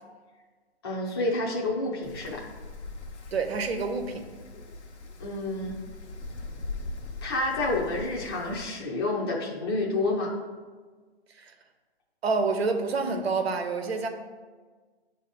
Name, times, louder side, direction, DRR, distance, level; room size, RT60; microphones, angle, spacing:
voice 1, 0.8-2.4 5.2-5.8 7.2-10.3, left 2 dB, 25° left, -4 dB, 0.6 m, -29 dB
Wind, 2.0-8.6, left 3 dB, 90° left, 0.9 m, -41 dB
voice 2, 3.3-4.3 12.2-14.1, right 4 dB, 65° right, 6 dB, 0.9 m, -27 dB
8.2 x 2.8 x 5.0 m, 1.4 s
hypercardioid pair, 165°, 33 cm